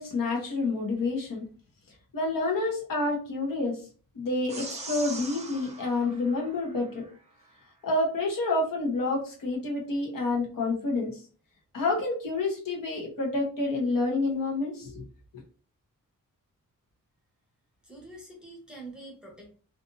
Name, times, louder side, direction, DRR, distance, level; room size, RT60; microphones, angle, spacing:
voice 1, 0.0-1.4 2.1-3.8 4.1-7.0 7.8-11.2 11.7-15.0, left 2 dB, 80° left, 0 dB, 1.0 m, -28 dB
sound 1, 4.5-7.1, right 3 dB, 20° right, 0.6 m, -41 dB
voice 2, 17.8-19.5, right 2 dB, 5° right, -2 dB, 0.9 m, -45 dB
2.5 x 2.5 x 2.6 m, 0.40 s
wide cardioid pair, 150°, 33 cm